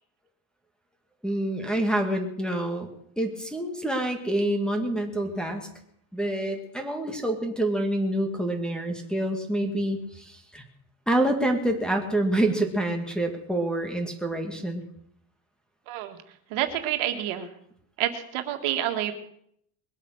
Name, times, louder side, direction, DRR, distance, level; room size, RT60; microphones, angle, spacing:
voice 1, 1.2-2.9 3.2-5.7 6.1-10.7 11.1-14.8, right 1 dB, ahead, 1 dB, 2.0 m, -27 dB
voice 2, 15.9-16.2 16.5-17.5 18.0-19.1, right 12 dB, 80° right, 5 dB, 2.0 m, -28 dB
21.5 x 8.5 x 6.5 m, 0.70 s
cardioid pair, 140°, 49 cm